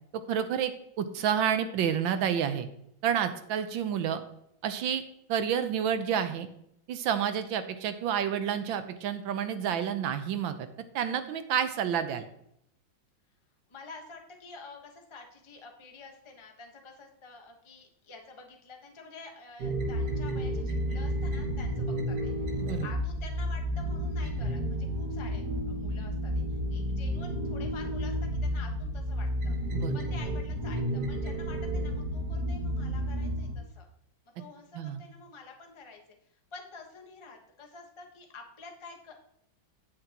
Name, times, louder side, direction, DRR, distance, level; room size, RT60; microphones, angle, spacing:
voice 1, 0.3-0.7 1.0-2.7 3.0-4.2 4.6-5.0 5.3-6.5 6.9-10.6 10.9-12.3 22.6-22.9 29.7-30.0 34.7-35.0, right 8 dB, 75° right, 9 dB, 1.5 m, -29 dB
voice 2, 13.7-29.5 29.9-33.9 34.4-36.0 36.5-39.1, left 4 dB, 20° left, 2 dB, 0.9 m, -49 dB
sound 1, 19.6-33.6, equal, 55° right, 1.9 m, -31 dB
9.6 x 8.7 x 2.9 m, 0.74 s
omnidirectional pair, 2.2 m